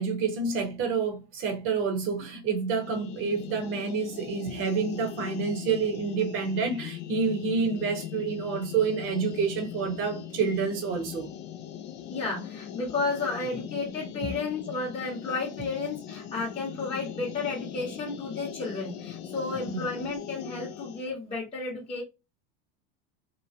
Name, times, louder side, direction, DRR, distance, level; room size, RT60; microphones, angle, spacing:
voice 1, 0.0-11.3 19.7-19.8, right 5 dB, 45° right, 1.0 m, -28 dB
sound 1, 2.8-21.1, left 10 dB, 35° left, 0.4 m, -40 dB
voice 2, 12.1-22.0, left 3 dB, 20° left, 0.9 m, -32 dB
3.0 x 2.1 x 2.6 m
supercardioid pair, 125°, 31 cm